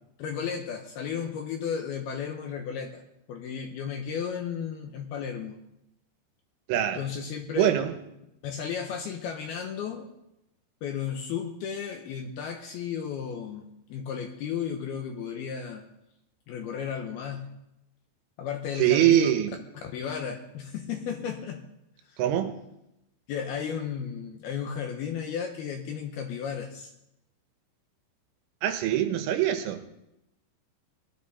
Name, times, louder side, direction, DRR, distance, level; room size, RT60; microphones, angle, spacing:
voice 1, 0.2-3.0 3.3-5.6 6.9-7.8 8.4-10.1 10.8-15.9 16.5-17.5 18.4-19.3 19.9-21.6 22.1-22.2 23.3-26.9, left 7 dB, 75° left, 4 dB, 2.4 m, -34 dB
voice 2, 6.7-7.0 7.6-7.9 18.8-19.5 22.2-22.5 28.6-30.0, right 11 dB, 85° right, 7 dB, 3.5 m, -23 dB
19.5 x 12.0 x 4.2 m, 0.85 s
omnidirectional pair, 5.5 m